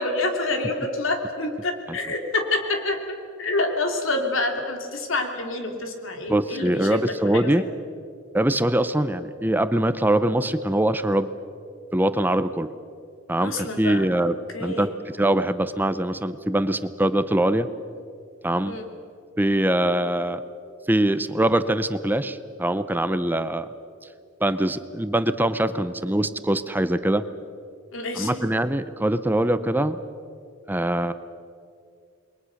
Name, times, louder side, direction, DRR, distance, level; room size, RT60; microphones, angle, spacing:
voice 1, 0.0-3.0 3.4-7.7 13.4-14.1 14.5-14.9 18.6-18.9 27.9-28.4, left 2 dB, 85° left, 4 dB, 3.0 m, -27 dB
voice 2, 6.3-7.6 8.3-11.3 11.9-12.7 13.3-14.9 15.1-17.7 18.4-18.8 19.4-20.4 20.9-23.7 24.4-27.2 28.2-30.0 30.7-31.1, right 1 dB, 10° right, 12 dB, 0.6 m, -23 dB
28.5 x 22.0 x 6.5 m, 2.4 s
head